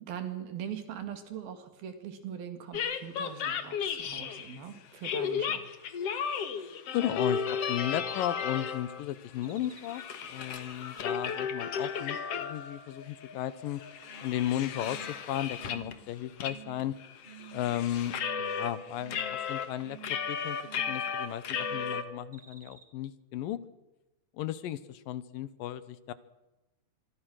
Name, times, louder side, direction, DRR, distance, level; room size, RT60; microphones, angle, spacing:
voice 1, 0.1-5.6, right 8 dB, 80° right, 8 dB, 4.2 m, -41 dB
sound 1, 2.7-4.6 5.0-9.0 9.4-12.8 13.2-13.3 13.7-15.9 16.4-16.5 16.8-18.7 19.1-22.0, left 7 dB, 55° left, 2.1 m, -34 dB
voice 2, 6.9-10.0 10.3-13.8 14.2-16.9 17.5-18.1 18.5-20.0 20.3-20.6 20.9-23.6 24.3-26.1, left 12 dB, 75° left, 15 dB, 2.6 m, -35 dB
sound 2, 9.4-14.4 14.7-15.2 15.6-16.1 16.5-16.9 17.2-17.8 18.1-18.6 19.0-19.5 19.8-20.3 20.6-21.1 21.5-22.0 22.3-22.8, right 3 dB, 15° right, 2.1 m, -51 dB
26.0 x 23.0 x 6.4 m, 1.0 s
omnidirectional pair, 4.2 m